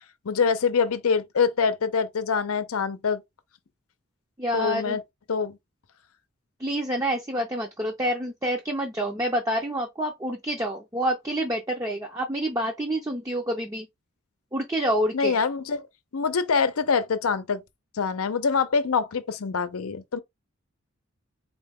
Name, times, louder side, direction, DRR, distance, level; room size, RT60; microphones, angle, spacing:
voice 1, 0.2-3.2 4.5-5.0 5.3-5.6 15.1-15.9 16.1-17.6 17.9-20.2, left 5 dB, 90° left, 0.6 m, -25 dB
voice 2, 4.4-5.0 6.6-13.9 14.5-15.4, right 1 dB, 15° right, 0.5 m, -27 dB
4.1 x 2.2 x 3.5 m
head